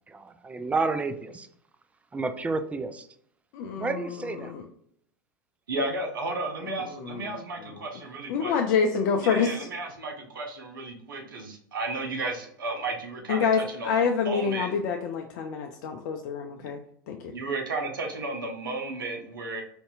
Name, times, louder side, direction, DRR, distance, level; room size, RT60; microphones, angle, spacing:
voice 1, 0.1-1.5 2.1-3.1 3.8-4.5, right 3 dB, 10° right, 10 dB, 0.4 m, -30 dB
voice 2, 3.5-4.7 6.6-7.4 7.6-7.9 8.3-9.7 13.3-16.8 17.1-17.2, left 6 dB, 55° left, 4 dB, 0.5 m, -27 dB
voice 3, 5.7-8.5 9.2-14.7 16.6-16.7 17.3-19.6, right 2 dB, 80° right, 3 dB, 0.8 m, -33 dB
4.4 x 2.7 x 2.3 m, 0.67 s
hypercardioid pair, 90°, 11 cm